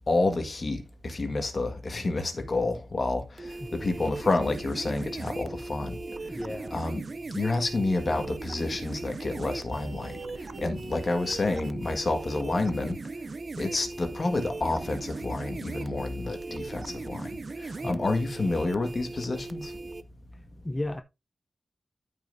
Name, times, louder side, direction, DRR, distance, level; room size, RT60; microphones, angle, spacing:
voice 1, 0.1-3.2 3.7-6.0 6.7-7.0 7.3-10.1 10.6-13.0 13.6-17.3 17.6-19.7, left 2 dB, 40° left, 1.6 m, -29 dB
sound 1, 3.4-20.0, right 3 dB, 45° right, 0.6 m, -39 dB
voice 2, 3.6-4.0 6.3-6.8 17.8-18.2 20.6-21.0, left 1 dB, 15° left, 0.6 m, -35 dB
13.0 x 5.4 x 2.7 m
wide cardioid pair, 130°, 0 cm